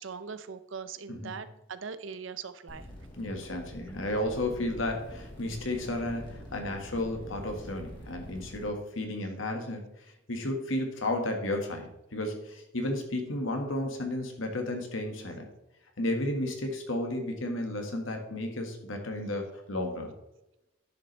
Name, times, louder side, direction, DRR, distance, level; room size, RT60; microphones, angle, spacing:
voice 1, 0.0-2.9, right 6 dB, 75° right, 13 dB, 0.7 m, -40 dB
voice 2, 1.1-1.5 3.2-9.9 10.3-15.4 16.0-20.1, left 1 dB, 85° left, 4 dB, 1.7 m, -33 dB
sound 1, 2.7-8.7, equal, 25° left, 2.2 m, -45 dB
10.5 x 6.9 x 3.3 m, 0.92 s
head